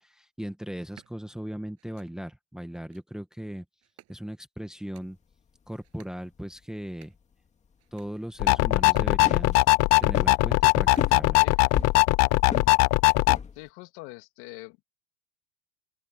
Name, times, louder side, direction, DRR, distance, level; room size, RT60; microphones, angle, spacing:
voice 1, 0.0-3.6 4.1-5.2 5.7-7.1 7.9-9.6 10.0-11.4, equal, ahead, 1.5 m, -38 dB
sound 1, 0.7-1.1 1.8-2.1 2.7-3.0 3.8-4.4 4.7-5.1 5.7-6.2 6.7-7.3 7.8-8.1 8.7-9.2 9.7-10.3 10.7-11.5 11.7-12.3, right 15 dB, 40° right, 7.5 m, -57 dB
sound 2, 5.3-7.3 7.6-7.7 8.0-13.7, left 6 dB, 20° left, 2.2 m, -38 dB
sound 3, 8.4-13.4, left 23 dB, 45° left, 0.7 m, -20 dB
voice 2, 13.5-14.8, left 24 dB, 60° left, 2.8 m, -43 dB
open air
supercardioid pair, 145°, 38 cm